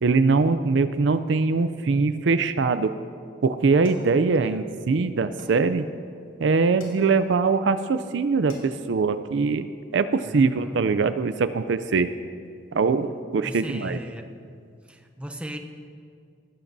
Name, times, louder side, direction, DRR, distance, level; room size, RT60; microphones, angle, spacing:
voice 1, 0.0-2.9 3.4-5.9 6.4-9.7 9.9-12.1 12.7-14.0, right 4 dB, 65° right, 12 dB, 0.4 m, -22 dB
sound 1, 3.8-4.8 5.4-6.1 6.8-7.5 8.0-8.1 8.3-9.0, left 1 dB, 75° left, 3.1 m, -49 dB
voice 2, 4.2-4.7 10.3-10.8 13.4-14.3 14.9-15.6, equal, 5° right, 5 dB, 0.7 m, -37 dB
18.0 x 14.0 x 2.7 m, 2.3 s
head